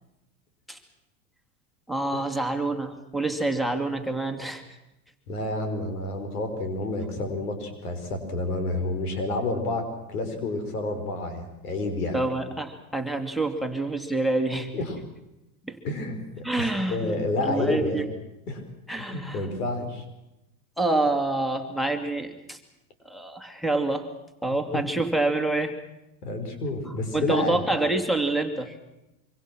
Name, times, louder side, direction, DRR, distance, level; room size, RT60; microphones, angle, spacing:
voice 1, 1.9-4.6 12.1-14.7 15.6-15.8 16.4-18.1 18.9-19.5 20.8-22.6 23.0-24.1 24.4-25.8 26.9-28.8, right 2 dB, ahead, 6 dB, 2.7 m, -27 dB
voice 2, 5.3-12.2 14.7-15.0 15.8-18.1 18.5-18.6 19.0-20.0 24.7-24.8 26.2-27.6, left 2 dB, 90° left, 7 dB, 5.6 m, -29 dB
25.0 x 25.0 x 6.2 m, 0.91 s
hypercardioid pair, 105°, 44 cm